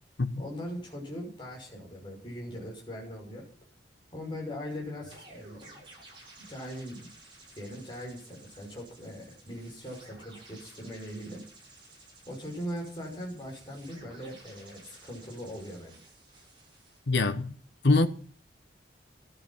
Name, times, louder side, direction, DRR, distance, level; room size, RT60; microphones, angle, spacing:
voice 1, 0.4-3.5 4.1-5.8 6.5-7.1 7.5-11.4 12.3-16.0, equal, 25° left, 6.0 m, -40 dB
sound 1, 5.0-17.0, right 2 dB, 25° right, 7.2 m, -54 dB
voice 2, 17.1-17.5 17.8-18.1, left 3 dB, 75° left, 1.0 m, -23 dB
13.5 x 12.0 x 7.4 m
head